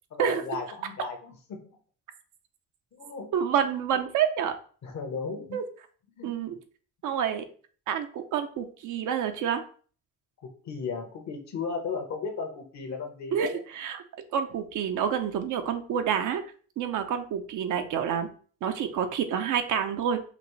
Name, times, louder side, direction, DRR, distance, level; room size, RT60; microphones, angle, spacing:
voice 1, 0.1-1.6 2.9-3.3 4.8-5.6 6.2-6.3 10.4-13.6, left 5 dB, 70° left, 5 dB, 1.2 m, -35 dB
voice 2, 3.3-4.5 5.5-5.6 6.2-6.6 7.0-7.5 7.9-9.6 13.3-14.0 14.3-16.4 16.8-18.3 18.6-20.2, right 8 dB, 80° right, 7 dB, 0.7 m, -28 dB
5.2 x 2.6 x 3.2 m, 0.43 s
cardioid pair, 90°, 30 cm